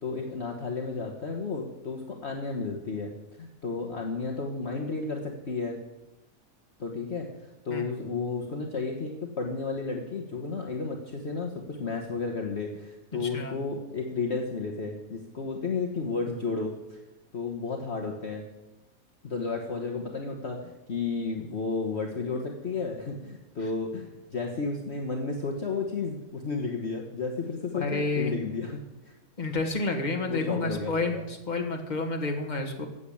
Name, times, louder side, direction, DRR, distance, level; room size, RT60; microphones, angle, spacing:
voice 1, 0.0-3.1 3.4-5.8 6.8-17.0 17.3-18.4 19.2-29.1 30.3-31.2, left 4 dB, 50° left, 1 dB, 1.6 m, -32 dB
voice 2, 27.7-28.3 29.4-32.9, left 3 dB, 30° left, 3 dB, 1.8 m, -30 dB
14.5 x 8.2 x 8.6 m, 1.0 s
omnidirectional pair, 1.5 m